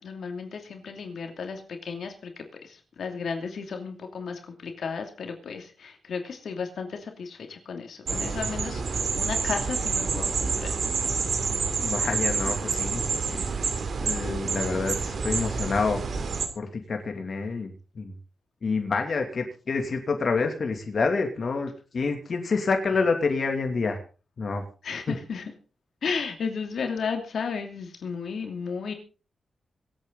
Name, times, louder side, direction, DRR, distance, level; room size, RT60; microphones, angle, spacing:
voice 1, 0.0-10.9 24.8-25.4 26.0-28.9, left 5 dB, 75° left, 4 dB, 2.7 m, -34 dB
sound 1, 8.1-16.5, right 5 dB, 65° right, 2.8 m, -28 dB
voice 2, 11.8-13.0 13.3-13.6 14.0-16.1 16.5-18.1 18.6-24.0 24.4-24.6 25.1-25.2, left 4 dB, 55° left, 4 dB, 2.7 m, -28 dB
25.5 x 8.9 x 4.0 m, 0.35 s
cardioid pair, 90°, 0 cm